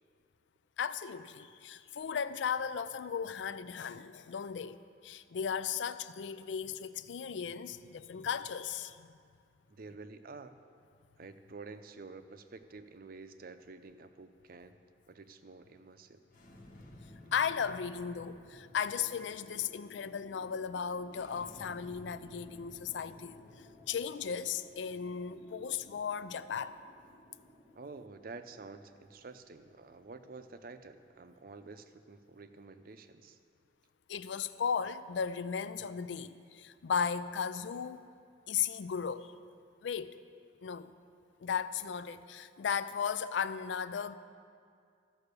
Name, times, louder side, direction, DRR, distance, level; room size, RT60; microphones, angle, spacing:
voice 1, 0.8-9.1 17.3-26.8 34.1-38.1 38.5-39.3 39.8-40.2 40.6-40.9 41.4-44.2, left 7 dB, 85° left, 0.4 m, -36 dB
voice 2, 9.7-10.6 11.2-14.8 15.1-16.2 27.7-33.4, right 3 dB, 55° right, 0.5 m, -49 dB
sound 1, 16.2-31.5, left 1 dB, 50° left, 1.3 m, -56 dB
13.5 x 5.8 x 6.7 m
head